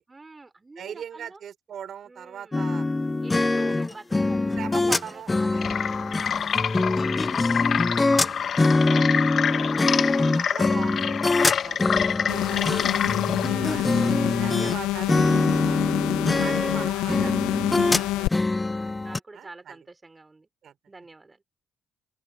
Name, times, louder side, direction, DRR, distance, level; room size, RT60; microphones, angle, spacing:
voice 1, 0.1-1.4 2.0-2.7 3.2-5.6 6.1-7.8 8.1-8.5 9.1-9.6 13.5-14.9 16.3-17.4 17.7-20.5 20.9-21.4, right 3 dB, 25° right, 3.7 m, -48 dB
voice 2, 0.8-2.8 3.4-3.7 4.5-5.6 8.2-8.3 8.9-9.1 9.8-10.0 10.3-13.2 13.7-13.9 14.4-15.2 15.6-15.8 16.4-17.3 17.9-18.0 19.3-19.7 20.6-20.7, right 9 dB, 60° right, 5.0 m, -40 dB
sound 1, 2.5-14.8 15.1-19.2, left 2 dB, 25° left, 0.6 m, -24 dB
sound 2, 5.5-13.5, left 7 dB, 55° left, 1.3 m, -27 dB
sound 3, 12.3-18.3, left 17 dB, 80° left, 1.1 m, -27 dB
open air
hypercardioid pair, 50°, 0 cm